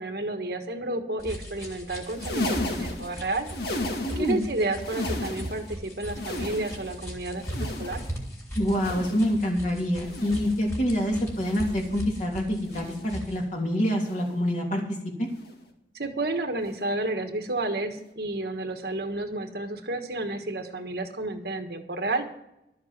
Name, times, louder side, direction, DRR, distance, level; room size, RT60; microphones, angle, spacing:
voice 1, 0.0-3.5 4.2-8.0 15.9-22.2, right 2 dB, 60° right, 5 dB, 1.5 m, -31 dB
sound 1, 1.2-13.4, equal, 15° left, 3.2 m, -38 dB
sound 2, 2.0-4.4 4.7-5.7 6.0-7.0 7.4-8.2 8.7-9.4 10.0-10.7 11.3-11.9 12.6-13.2 14.0-14.4 15.3-15.6 16.6-16.8 18.0-18.1, left 1 dB, 60° left, 2.1 m, -35 dB
voice 2, 4.0-4.4 8.6-14.8 15.2-15.3, equal, 45° left, 0 dB, 3.2 m, -26 dB
12.5 x 7.6 x 7.5 m, 0.84 s
head